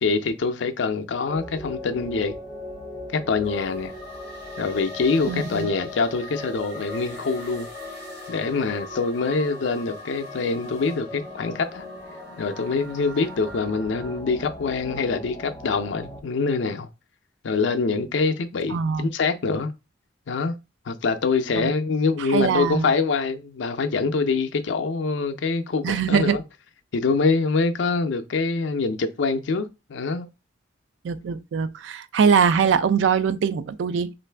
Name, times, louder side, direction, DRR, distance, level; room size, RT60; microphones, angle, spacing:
voice 1, 0.0-2.3 3.1-3.9 4.6-7.7 8.3-11.8 12.4-16.9 17.4-19.7 20.3-20.6 20.9-26.4 26.9-30.3, left 4 dB, 80° left, 0.5 m, -25 dB
sound 1, 1.3-16.2, left 2 dB, 20° left, 0.7 m, -39 dB
sound 2, 3.4-14.2, left 1 dB, 20° right, 2.1 m, -43 dB
voice 2, 5.3-5.7 18.7-19.1 21.6-21.7 22.3-22.9 25.8-26.4 31.0-34.1, right 6 dB, 85° right, 0.3 m, -22 dB
3.1 x 2.5 x 3.3 m
head